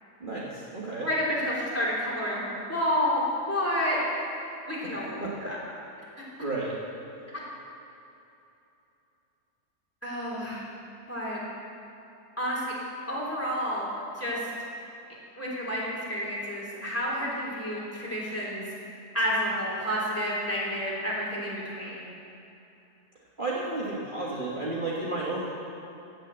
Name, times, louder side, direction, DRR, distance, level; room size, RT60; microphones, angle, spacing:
voice 1, 0.2-1.1 5.2-5.3 6.4-6.8 23.4-25.5, right 2 dB, 35° right, -7 dB, 1.7 m, -32 dB
voice 2, 1.0-4.0 4.6-5.6 10.0-10.6 11.1-11.4 12.4-12.7 13.1-13.9 14.1-14.5 15.4-15.8 16.1-18.7 19.1-22.1, equal, 10° left, -5 dB, 3.1 m, -30 dB
16.0 x 6.9 x 7.9 m, 2.9 s
omnidirectional pair, 1.6 m